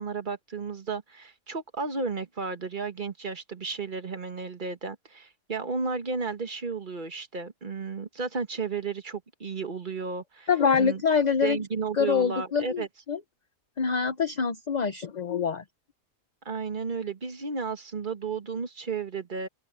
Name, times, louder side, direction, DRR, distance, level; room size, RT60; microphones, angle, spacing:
voice 1, 0.0-10.5 10.8-11.0 11.4-12.9 16.4-19.5, right 5 dB, 35° right, 1.7 m, -33 dB
voice 2, 10.5-11.6 12.0-13.2 13.8-15.6, left 6 dB, 40° left, 0.7 m, -25 dB
open air
omnidirectional pair, 1.4 m